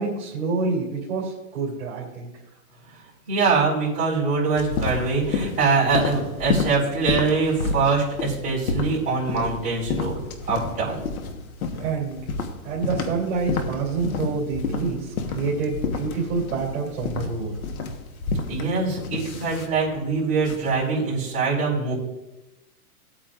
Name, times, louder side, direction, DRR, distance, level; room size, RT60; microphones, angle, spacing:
voice 1, 0.0-2.3 11.7-12.3 12.6-17.6, right 4 dB, 50° right, -5 dB, 2.9 m, -27 dB
voice 2, 3.3-10.2 10.5-11.0 18.5-21.9, right 4 dB, 15° right, -8 dB, 3.9 m, -23 dB
sound 1, 4.6-20.8, left 4 dB, 65° left, 1.4 m, -30 dB
17.0 x 8.6 x 2.5 m, 1.0 s
hypercardioid pair, 165°, 46 cm